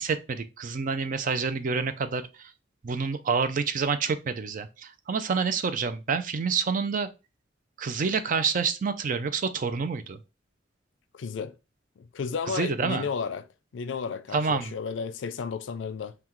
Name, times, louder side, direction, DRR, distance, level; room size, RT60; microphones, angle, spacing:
voice 1, 0.0-2.5 2.8-7.1 7.8-10.2 12.5-13.1 14.3-14.7, right 5 dB, 45° right, 0.4 m, -28 dB
voice 2, 11.1-11.5 12.0-13.5 13.7-16.1, left 5 dB, 80° left, 0.4 m, -33 dB
5.7 x 2.3 x 3.0 m
head